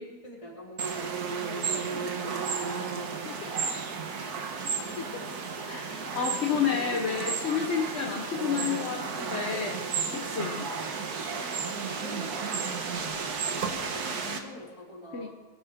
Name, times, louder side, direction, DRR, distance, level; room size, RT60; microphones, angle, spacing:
voice 1, 0.2-4.0 11.0-13.4 13.9-15.4, left 1 dB, 20° left, -4 dB, 3.6 m, -46 dB
sound 1, 0.8-14.4, right 5 dB, 90° right, 1.8 m, -33 dB
Giggle, 1.7-2.3 3.2-3.7 4.3-4.4 4.8-5.5 6.7-7.3 8.5-9.2 10.4-10.9 12.4-12.5, left 10 dB, 80° left, 1.2 m, -44 dB
voice 2, 4.6-4.9 5.6-9.8 10.1-10.6 15.1-15.3, left 7 dB, 50° left, 2 dB, 1.3 m, -30 dB
22.5 x 13.0 x 3.8 m, 1.4 s
omnidirectional pair, 1.6 m